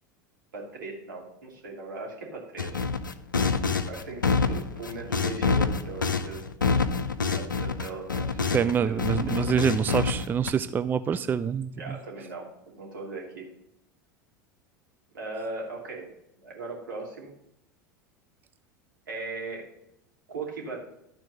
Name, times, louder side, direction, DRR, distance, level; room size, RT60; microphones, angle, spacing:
voice 1, 0.5-2.9 3.9-6.4 7.3-9.0 9.4-9.7 11.8-13.5 15.1-16.1 16.4-17.3 19.1-19.7 20.3-20.8, right 3 dB, 75° right, -2 dB, 2.7 m, -39 dB
sound 1, 2.6-8.7 9.0-10.5, left 4 dB, 85° left, 0.5 m, -27 dB
voice 2, 8.5-12.0, right 7 dB, 20° right, 12 dB, 0.3 m, -26 dB
12.0 x 4.5 x 6.6 m, 0.80 s
figure-of-eight pair, 80°, 10 cm